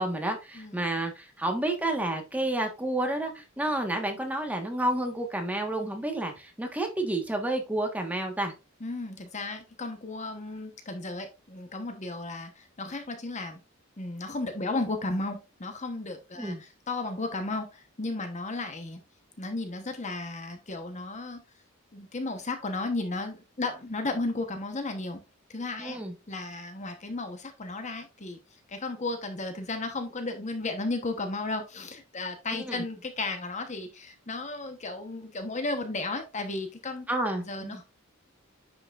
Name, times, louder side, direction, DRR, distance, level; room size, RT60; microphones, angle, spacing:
voice 1, 0.0-8.5 16.4-16.6 25.8-26.1 32.7-32.8 37.1-37.8, right 1 dB, 5° right, 1.3 m, -30 dB
voice 2, 8.8-13.6 14.0-19.0 19.4-21.4 21.9-25.2 25.5-26.0 26.3-37.1 37.4-37.8, left 2 dB, 35° left, 1.0 m, -34 dB
10.0 x 5.8 x 2.5 m
head